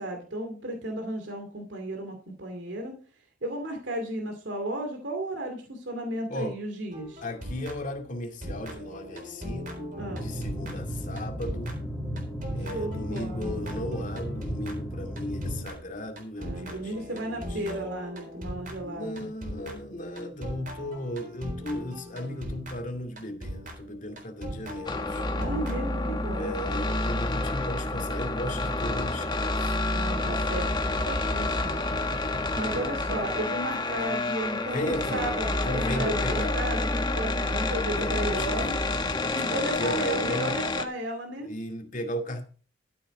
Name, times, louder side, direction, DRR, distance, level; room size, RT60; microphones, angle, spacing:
voice 1, 0.0-2.9 3.4-7.2 9.9-10.3 12.6-13.6 16.4-19.3 25.3-26.5 29.9-30.7 31.1-31.8 32.5-38.8 39.3-41.5, right 1 dB, 70° right, 2.5 m, -34 dB
sound 1, 6.9-8.1 8.4-26.2, equal, 45° right, 3.9 m, -40 dB
voice 2, 7.2-11.7 12.5-17.8 18.8-25.2 26.3-29.8 34.6-35.3 35.6-36.5 38.0-38.6 39.1-40.5 41.4-42.5, left 1 dB, 45° left, 2.3 m, -35 dB
sound 2, 10.0-15.6, equal, 5° left, 1.5 m, -35 dB
sound 3, 24.9-40.9, left 2 dB, 25° left, 1.2 m, -29 dB
13.0 x 7.8 x 4.9 m
head